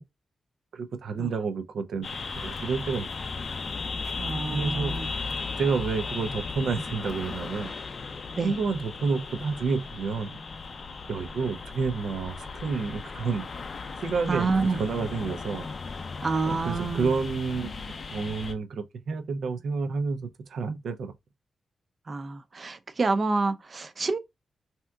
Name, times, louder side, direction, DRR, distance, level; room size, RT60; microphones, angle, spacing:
voice 1, 0.7-2.1 2.3-3.1 4.5-4.9 5.6-7.7 8.4-10.4 11.1-13.5 14.0-15.7 16.5-21.1, right 4 dB, 85° right, 0.5 m, -29 dB
sound 1, 2.0-18.5, left 4 dB, 40° left, 0.4 m, -36 dB
voice 2, 4.2-5.1 8.3-8.5 14.3-14.8 16.2-17.1 22.1-24.2, right 3 dB, 35° right, 0.4 m, -28 dB
3.3 x 2.8 x 2.2 m
wide cardioid pair, 175°, 0 cm